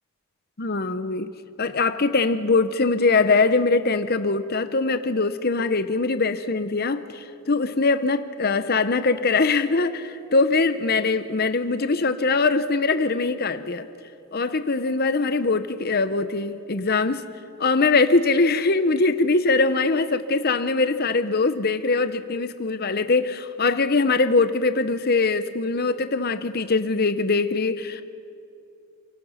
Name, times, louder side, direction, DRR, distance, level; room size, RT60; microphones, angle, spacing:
voice 1, 0.6-1.3 1.6-13.9 14.3-17.2 17.6-28.0, left 3 dB, 45° left, 11 dB, 0.9 m, -22 dB
28.5 x 17.5 x 5.8 m, 2.5 s
head